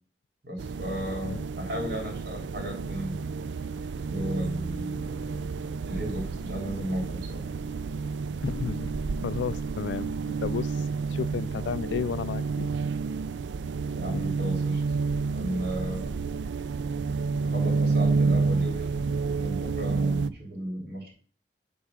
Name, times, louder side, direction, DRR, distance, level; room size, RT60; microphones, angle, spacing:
voice 1, 0.4-3.3 4.1-5.2 5.9-7.5 13.9-14.8 15.3-16.1 17.4-19.0 19.3-21.1, equal, 60° right, 3.3 m, -34 dB
sound 1, 0.6-20.3, right 4 dB, 85° right, 0.4 m, -30 dB
voice 2, 8.4-8.9 9.2-10.8 11.1-12.7 14.1-14.3, left 6 dB, 85° left, 0.3 m, -33 dB
8.7 x 3.5 x 6.7 m
head